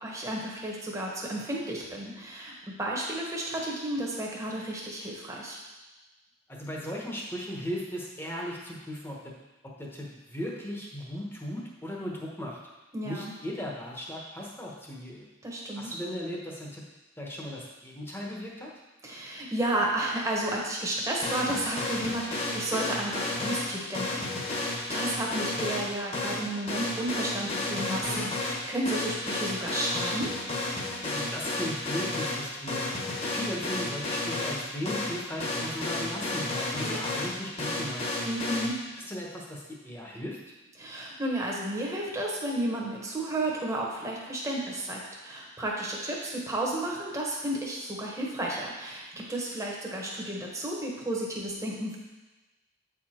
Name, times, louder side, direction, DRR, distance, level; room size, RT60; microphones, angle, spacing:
voice 1, 0.0-2.5 2.8-5.6 12.9-13.3 15.4-15.9 19.0-30.3 38.2-38.8 40.8-52.0, right 1 dB, 15° right, -3 dB, 1.3 m, -32 dB
voice 2, 6.5-9.3 9.8-12.6 13.0-15.3 15.7-16.8 17.2-18.7 31.0-32.9 33.3-38.3 38.9-40.4, equal, 10° left, -3 dB, 1.2 m, -37 dB
sound 1, 21.2-38.7, left 2 dB, 30° left, 1.3 m, -32 dB
8.2 x 4.9 x 4.4 m, 1.1 s
head